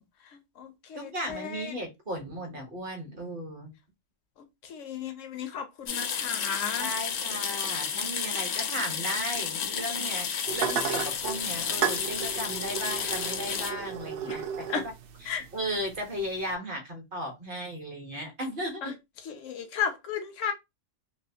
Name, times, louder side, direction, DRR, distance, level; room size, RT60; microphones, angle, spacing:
voice 1, 0.2-1.7 4.6-6.9 14.3-14.4 14.7-14.8 15.3-15.5 18.8-18.9 19.2-20.5, left 7 dB, 85° left, 1.1 m, -34 dB
voice 2, 0.9-3.7 6.8-14.5 14.7-14.9 15.2-19.0, equal, 45° right, 1.2 m, -36 dB
sound 1, 5.9-13.7, left 7 dB, 65° left, 0.8 m, -32 dB
sound 2, 10.5-16.5, right 8 dB, 60° right, 0.6 m, -35 dB
3.2 x 2.7 x 2.7 m
omnidirectional pair, 1.3 m